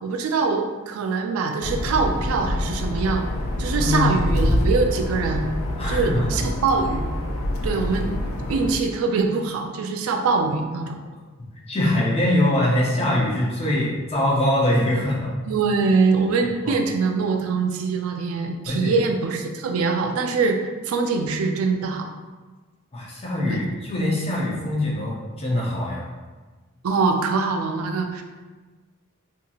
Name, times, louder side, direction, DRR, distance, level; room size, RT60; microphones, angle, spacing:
voice 1, 0.0-3.2 3.6-5.4 5.9-7.0 7.6-8.2 8.5-11.0 15.5-22.1 23.5-23.7 26.8-28.2, right 4 dB, 80° right, 4 dB, 0.4 m, -23 dB
sound 1, 1.6-8.7, left 1 dB, 70° left, 0.4 m, -26 dB
voice 2, 3.8-4.2 5.8-6.4 11.7-15.4 16.7-16.8 18.6-19.0 22.9-26.0, left 1 dB, 30° left, -4 dB, 0.6 m, -23 dB
2.8 x 2.7 x 2.3 m, 1.3 s
head